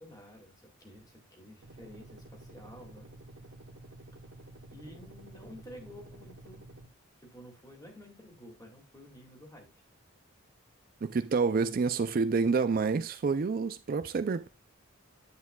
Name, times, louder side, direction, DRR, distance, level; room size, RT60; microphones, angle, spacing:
voice 1, 0.0-3.1 4.7-6.6 7.2-9.7, left 1 dB, 15° left, 2.1 m, -51 dB
sound 1, 1.6-6.9, right 2 dB, 70° right, 1.5 m, -51 dB
voice 2, 11.0-14.5, right 4 dB, 40° right, 0.4 m, -28 dB
9.6 x 7.9 x 2.3 m
head